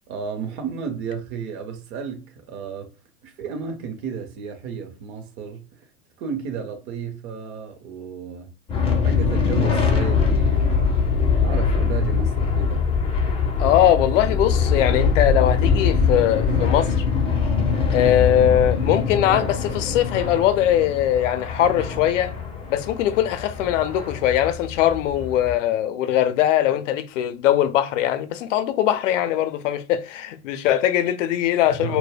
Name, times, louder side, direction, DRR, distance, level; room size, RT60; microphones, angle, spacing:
voice 1, 0.1-2.9 3.2-5.9 6.2-8.5 9.0-11.0 11.4-12.8 31.8-32.0, right 6 dB, 40° right, 0.7 m, -32 dB
sound 1, 8.7-25.6, left 5 dB, 15° left, 0.5 m, -22 dB
voice 2, 13.6-17.0 17.9-22.3 22.7-32.0, left 11 dB, 60° left, 0.6 m, -21 dB
2.2 x 2.1 x 3.3 m
hypercardioid pair, 100°, 44 cm